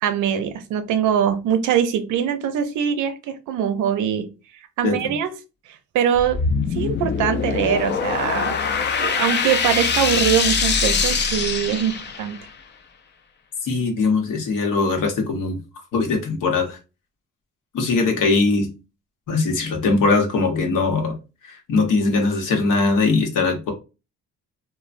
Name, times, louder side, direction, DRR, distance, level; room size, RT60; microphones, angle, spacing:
voice 1, 0.0-4.3 4.8-5.3 5.9-6.4 6.7-8.5 9.0-12.4, right 9 dB, 85° right, 0.5 m, -22 dB
voice 2, 4.8-5.1 13.6-15.6 15.9-16.8 17.7-18.7 19.3-21.2 21.4-23.7, left 3 dB, 85° left, 0.9 m, -21 dB
sound 1, 6.1-12.4, left 5 dB, 35° left, 0.4 m, -23 dB
3.1 x 2.1 x 2.5 m
cardioid pair, 90°, 30 cm